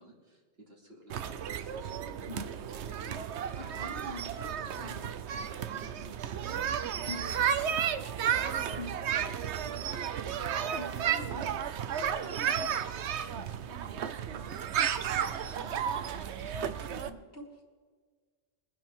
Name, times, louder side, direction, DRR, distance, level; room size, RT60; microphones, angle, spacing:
voice 1, 0.0-3.9 4.7-10.4 16.6-16.8, right 1 dB, 60° right, -2 dB, 2.9 m, -54 dB
sound 1, 1.1-17.1, right 8 dB, 75° right, 1.0 m, -33 dB
voice 2, 3.6-5.0 7.1-7.2 8.8-8.9 10.8-11.8 12.2-14.7 15.0-17.6, left 1 dB, 55° left, -1 dB, 2.6 m, -46 dB
22.5 x 10.0 x 3.6 m, 1.5 s
omnidirectional pair, 1.2 m